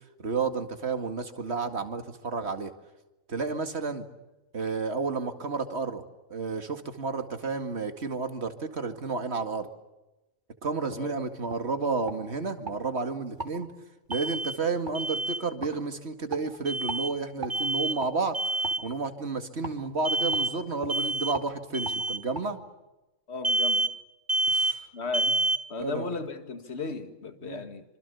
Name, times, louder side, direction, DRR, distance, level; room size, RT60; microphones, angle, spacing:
voice 1, 0.2-2.7 3.3-4.0 4.5-6.0 6.3-9.7 10.6-13.7 14.1-22.6 24.5-24.9 25.2-25.4 25.8-26.1 27.4-27.7, right 4 dB, 55° right, 2.4 m, -31 dB
sound 1, 10.9-11.0 11.5-11.6 12.0-12.8 13.3-13.5 14.1-14.2 14.8-15.0 15.6-15.7 16.3-16.4 16.9-17.0 17.4-17.6 18.0-18.1 18.6-18.8 19.6-19.8 20.3-20.5 20.8-21.0 21.3-21.5 21.8-22.0 22.3-22.4, right 3 dB, 35° right, 3.6 m, -38 dB
Alarm, 14.1-14.6 14.9-15.4 16.7-17.1 17.5-18.0 18.3-18.8 20.0-20.5 20.9-21.4 21.7-22.2 23.4-23.9 24.3-24.8 25.1-25.6, right 2 dB, 15° right, 1.2 m, -27 dB
voice 2, 23.3-23.8 24.9-25.3 25.7-27.8, left 4 dB, 55° left, 2.2 m, -35 dB
26.5 x 26.5 x 7.0 m
omnidirectional pair, 1.3 m